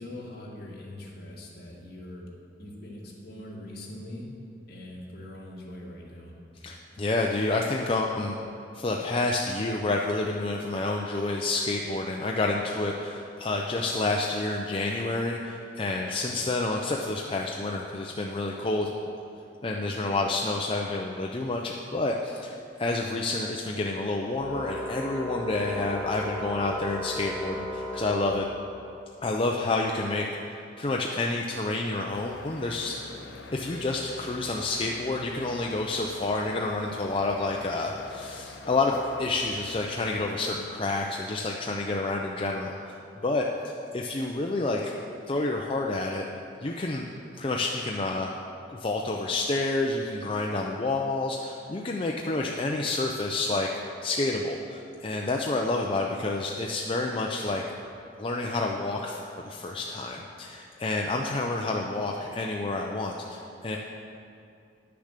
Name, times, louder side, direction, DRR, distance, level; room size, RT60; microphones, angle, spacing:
voice 1, 0.0-2.3 2.6-4.3 4.7-6.3, left 1 dB, 55° left, -3 dB, 2.0 m, -42 dB
voice 2, 6.6-8.3 8.7-18.9 19.6-22.5 22.8-28.5 29.2-33.0 33.5-42.9 43.2-43.5 43.9-44.9 45.3-46.2 46.6-47.1 47.3-48.3 48.7-53.7 54.0-57.6 58.2-63.8, left 2 dB, 30° left, 0 dB, 0.5 m, -29 dB
Organ, 24.4-28.9, left 1 dB, 25° right, 2.2 m, -36 dB
sound 1, 32.1-40.2, left 3 dB, 80° left, 0.8 m, -45 dB
9.8 x 6.9 x 6.6 m, 2.5 s
head